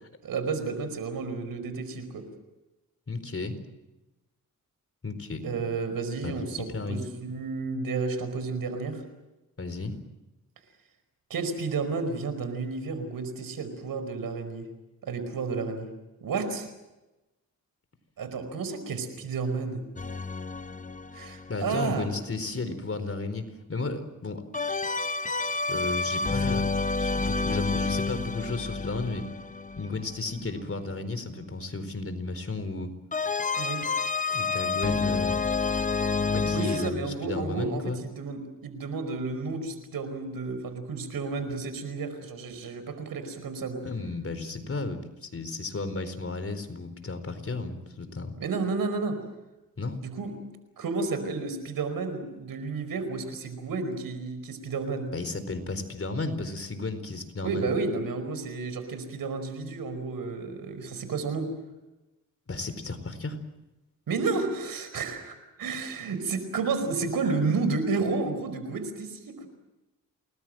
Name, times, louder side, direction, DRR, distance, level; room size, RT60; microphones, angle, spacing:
voice 1, 0.2-2.2 5.4-9.0 11.3-14.7 15.0-15.9 16.2-16.7 18.2-19.8 21.1-22.1 33.6-33.9 36.5-43.9 48.4-49.2 50.0-50.3 50.8-55.1 57.4-61.5 64.1-69.5, right 4 dB, 85° right, 9 dB, 5.1 m, -31 dB
voice 2, 3.1-3.6 5.0-5.7 6.2-7.0 9.6-10.0 21.5-24.4 25.7-26.7 27.0-29.3 29.8-32.9 34.3-35.4 36.3-38.0 43.8-48.3 49.8-50.0 55.1-57.7 62.5-63.4, left 3 dB, 40° left, 10 dB, 4.3 m, -33 dB
sound 1, 20.0-22.0 24.5-30.5 33.1-36.9, left 4 dB, 25° left, 1.0 m, -29 dB
28.5 x 20.5 x 7.8 m, 1.0 s
cardioid pair, 70°, 34 cm